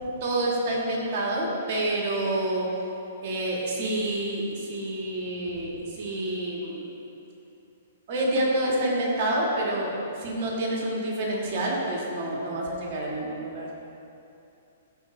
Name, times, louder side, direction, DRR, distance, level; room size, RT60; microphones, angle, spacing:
voice 1, 0.2-2.8 3.2-7.0 8.1-13.7, right 1 dB, 50° right, -3 dB, 1.9 m, -28 dB
12.5 x 4.8 x 3.5 m, 2.7 s
hypercardioid pair, 135°, 0 cm